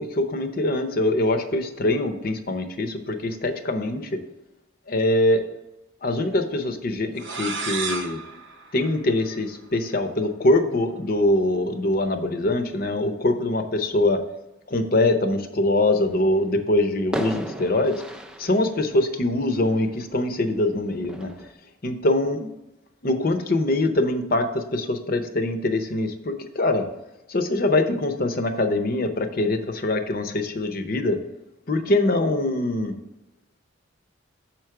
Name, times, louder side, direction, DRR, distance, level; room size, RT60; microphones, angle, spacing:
voice 1, 0.0-4.2 4.9-5.5 6.0-8.2 8.7-14.2 14.7-18.0 18.4-21.5 21.8-22.5 23.0-26.9 27.3-31.2 31.7-32.9, left 1 dB, 45° left, 7 dB, 0.7 m, -23 dB
sound 1, 7.2-9.8, right 4 dB, 65° right, 0.7 m, -33 dB
sound 2, 16.3-16.5 17.1-20.3 21.0-21.5, right 1 dB, 5° right, 0.4 m, -35 dB
7.2 x 4.6 x 4.8 m, 0.95 s
head